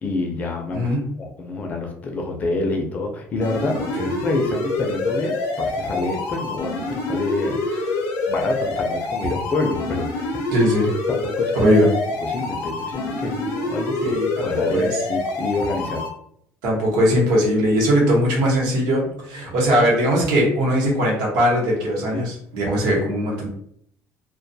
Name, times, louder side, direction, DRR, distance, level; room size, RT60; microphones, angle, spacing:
voice 1, 0.0-0.9 1.2-7.6 8.3-10.5 11.1-11.7 12.2-14.1 14.4-16.0 22.1-22.3, left 2 dB, 25° left, 2 dB, 0.4 m, -27 dB
voice 2, 0.7-1.1 4.0-4.1 10.5-11.0 11.6-11.9 14.0-14.4 14.7-15.0 16.6-23.5, equal, 80° right, -3 dB, 1.0 m, -20 dB
sound 1, 3.4-16.1, left 3 dB, 70° left, 0.6 m, -26 dB
2.2 x 2.2 x 2.6 m, 0.68 s
cardioid pair, 165°, 6 cm